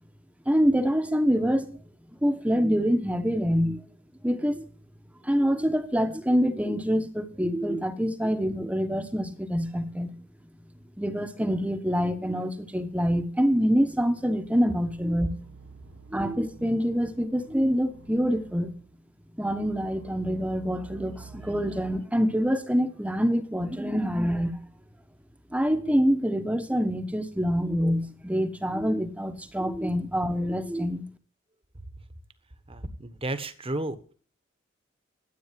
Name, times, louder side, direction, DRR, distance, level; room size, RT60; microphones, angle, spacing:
voice 1, 0.5-1.8 2.2-3.8 4.2-4.6 5.2-10.1 11.0-15.3 16.1-18.7 19.4-24.6 25.5-31.0, equal, 5° right, 1.1 m, -26 dB
sound 1, 14.9-19.0 19.5-22.0, right 4 dB, 70° right, 1.2 m, -48 dB
voice 2, 32.7-34.1, right 2 dB, 30° right, 1.2 m, -33 dB
13.0 x 8.8 x 7.5 m
head